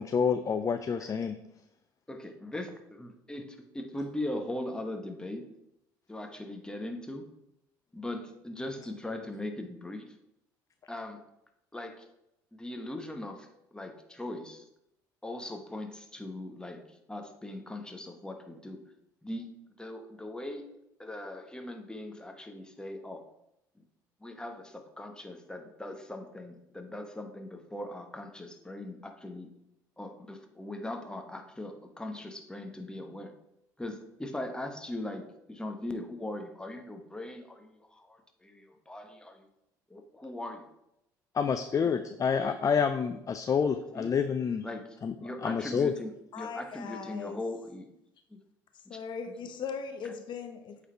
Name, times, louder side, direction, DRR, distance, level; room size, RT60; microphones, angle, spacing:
voice 1, 0.0-1.3 41.3-44.6 45.0-45.1 45.4-45.9, left 6 dB, 35° left, 9 dB, 0.5 m, -28 dB
voice 2, 2.1-5.4 6.1-7.3 7.9-10.1 10.9-11.2 11.7-12.1 12.5-14.6 15.2-16.8 17.1-18.8 19.2-19.5 19.8-20.7 21.0-23.2 23.8-23.9 24.2-29.5 30.0-33.3 33.8-39.5 39.9-40.7 41.7-41.9 43.9-44.2 44.6-47.9 48.3-48.4 48.8-49.0, left 1 dB, 10° left, 4 dB, 1.2 m, -40 dB
voice 3, 46.3-47.4 48.9-50.8, left 6 dB, 50° left, 7 dB, 0.9 m, -39 dB
8.1 x 4.0 x 4.5 m, 0.83 s
hypercardioid pair, 60°, 10 cm